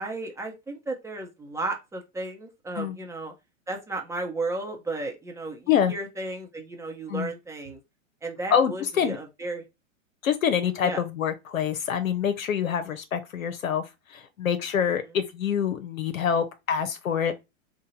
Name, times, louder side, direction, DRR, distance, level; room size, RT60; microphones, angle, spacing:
voice 1, 0.0-3.3 3.7-7.8 8.2-9.6 10.8-11.0 14.9-15.1, right 2 dB, 5° right, 0.8 m, -34 dB
voice 2, 8.5-9.2 10.2-17.3, left 8 dB, 85° left, 0.7 m, -26 dB
3.7 x 2.2 x 4.2 m
hypercardioid pair, 115°, 40 cm